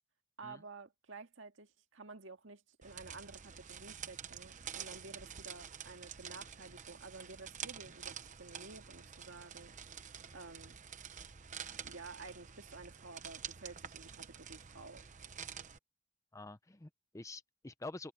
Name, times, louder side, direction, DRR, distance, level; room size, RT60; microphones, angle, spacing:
voice 1, 0.4-9.7 10.3-10.8 11.8-15.0, right 3 dB, 70° right, 2.0 m, -52 dB
sound 1, 2.8-15.8, right 8 dB, 40° right, 0.9 m, -48 dB
voice 2, 16.3-18.1, left 2 dB, 15° left, 0.6 m, -47 dB
open air
head